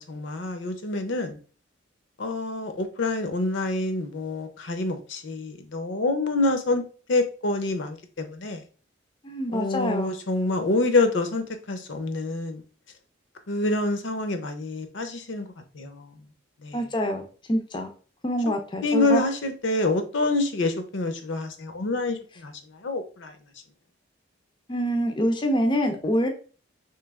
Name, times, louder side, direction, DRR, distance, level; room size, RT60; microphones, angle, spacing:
voice 1, 0.0-1.4 2.2-8.6 9.5-12.6 13.5-15.5 15.7-16.1 16.6-16.8 18.8-22.5 22.8-23.3, left 2 dB, 70° left, 0.6 m, -27 dB
voice 2, 9.2-10.2 16.7-17.2 17.5-17.9 18.2-19.2 24.7-26.3, equal, 25° left, 0.4 m, -25 dB
3.2 x 2.8 x 3.5 m
head